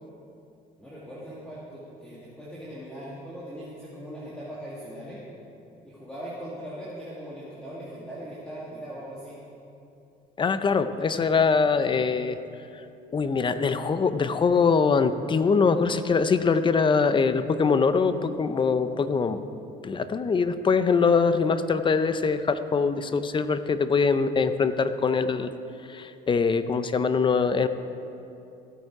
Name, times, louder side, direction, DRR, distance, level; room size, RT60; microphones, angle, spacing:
voice 1, 0.8-5.2 5.8-9.4, equal, 5° left, -8 dB, 2.4 m, -40 dB
voice 2, 10.4-12.4 13.1-19.4 19.8-25.5 25.9-27.7, left 5 dB, 30° left, 11 dB, 0.6 m, -23 dB
15.5 x 9.0 x 4.8 m, 2.7 s
cardioid pair, 110°, 17 cm